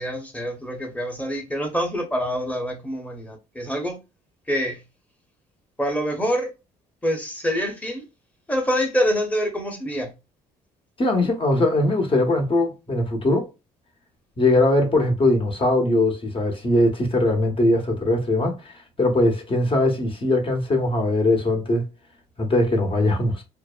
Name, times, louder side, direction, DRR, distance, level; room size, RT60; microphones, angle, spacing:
voice 1, 0.0-4.0 4.5-4.8 5.8-6.5 7.0-8.0 8.5-10.1, equal, 10° left, 1.0 m, -26 dB
voice 2, 11.0-13.5 14.4-21.8 22.4-23.4, left 1 dB, 30° left, 0.9 m, -21 dB
2.6 x 2.1 x 2.3 m
cardioid pair, 85°, 17 cm